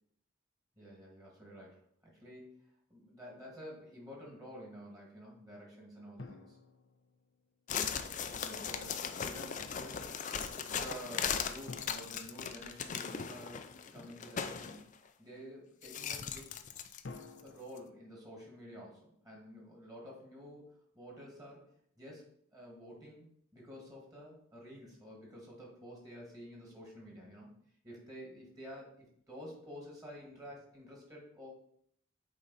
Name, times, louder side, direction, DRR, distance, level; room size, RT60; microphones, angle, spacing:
voice 1, 0.8-6.6 8.3-10.2 10.5-13.6 13.9-14.9 15.2-16.5 17.4-21.6 22.0-22.2 22.5-23.3 23.5-27.6 27.8-31.5, equal, 20° right, -3 dB, 1.9 m, -50 dB
sound 1, 6.2-7.8 11.7-13.6 17.0-19.3, left 3 dB, 65° left, 0.7 m, -53 dB
sound 2, 7.7-14.8 15.8-17.4 17.8-17.9, left 7 dB, 40° left, 0.4 m, -38 dB
8.3 x 3.8 x 4.1 m, 0.67 s
head